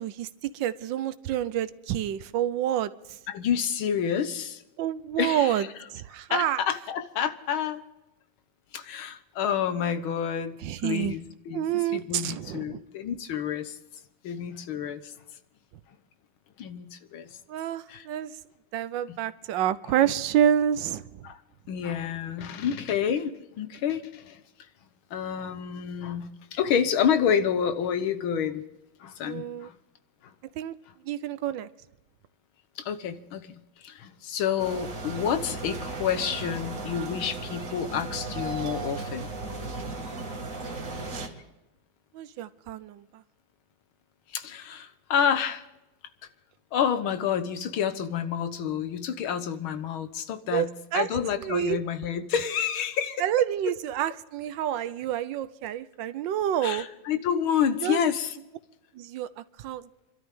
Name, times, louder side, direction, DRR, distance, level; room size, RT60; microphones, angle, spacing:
voice 1, 0.0-3.2 4.8-6.6 10.6-11.1 11.5-12.8 17.5-18.4 18.7-21.3 29.2-29.7 30.6-30.7 31.0-31.7 41.1-41.3 42.1-43.2 50.5-51.1 51.3-51.8 53.2-56.9 57.8-58.0 58.9-59.9, right 10 dB, 70° right, 14 dB, 1.3 m, -28 dB
voice 2, 3.3-4.6 5.2-5.5 6.3-7.8 8.7-11.7 11.9-13.8 14.2-15.1 16.6-17.3 17.9-18.1 19.1-19.2 21.2-21.4 21.7-24.4 25.1-28.6 29.0-29.7 32.8-39.3 44.3-45.6 46.7-50.7 50.9-53.3 56.6-58.4, left 8 dB, 75° left, 10 dB, 1.9 m, -29 dB
sound 1, 34.6-41.3, right 3 dB, 40° right, 2.4 m, -36 dB
27.0 x 12.5 x 3.7 m, 0.96 s
omnidirectional pair, 2.3 m